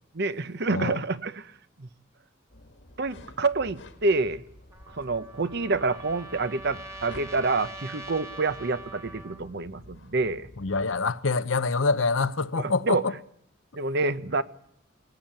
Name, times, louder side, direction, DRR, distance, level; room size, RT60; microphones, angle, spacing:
voice 1, 0.1-1.5 1.8-1.9 3.0-4.4 4.9-10.5 12.6-13.1 13.7-14.4, right 3 dB, 55° right, 0.9 m, -27 dB
sound 1, 2.5-11.0, left 1 dB, 65° left, 1.8 m, -50 dB
Trumpet, 4.7-9.4, right 2 dB, 15° right, 1.5 m, -43 dB
voice 2, 10.6-13.1, left 4 dB, 85° left, 0.9 m, -25 dB
20.0 x 17.5 x 8.9 m
head